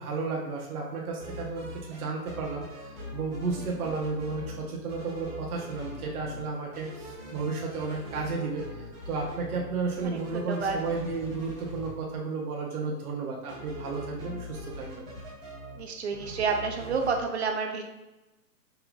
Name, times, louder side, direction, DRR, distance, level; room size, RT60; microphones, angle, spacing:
voice 1, 0.0-15.0, right 4 dB, 60° right, -2 dB, 0.9 m, -33 dB
sound 1, 1.2-2.0 2.3-4.6 4.9-6.4 6.7-11.9 13.5-15.8 16.1-17.3, left 1 dB, 15° right, 1.1 m, -42 dB
voice 2, 10.0-10.8 15.8-17.8, right 5 dB, 45° right, 4 dB, 0.6 m, -30 dB
5.3 x 3.9 x 2.3 m, 1.0 s
hypercardioid pair, 165°, 49 cm